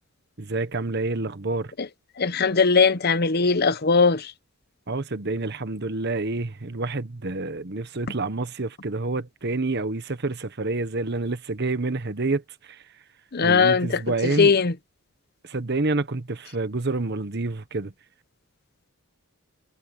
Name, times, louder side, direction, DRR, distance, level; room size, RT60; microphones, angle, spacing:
voice 1, 0.4-1.7 4.9-12.8 13.4-14.5 15.4-17.9, right 2 dB, 50° right, 1.1 m, -28 dB
voice 2, 2.2-4.3 13.3-14.7, left 5 dB, 50° left, 0.9 m, -20 dB
head